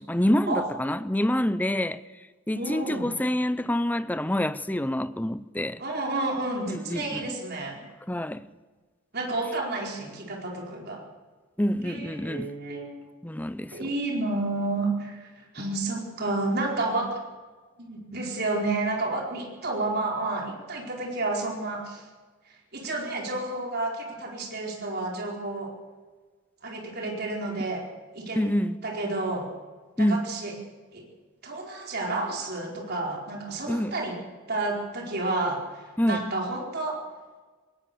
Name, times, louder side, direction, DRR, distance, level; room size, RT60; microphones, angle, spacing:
voice 1, 0.0-5.8 6.7-7.3 8.1-8.5 11.6-12.6 13.2-13.8 28.4-28.8 30.0-30.3 33.7-34.0 36.0-36.3, left 1 dB, 10° left, 0.6 m, -27 dB
voice 2, 2.5-3.2 5.8-7.8 9.1-11.0 11.8-13.0 13.7-17.2 17.8-22.1 22.5-25.7 26.6-27.8 28.1-28.4 28.8-29.5 30.0-30.5 30.9-31.0 31.4-34.2 34.5-37.0, right 2 dB, 45° right, 4.6 m, -30 dB
20.0 x 18.5 x 7.1 m
head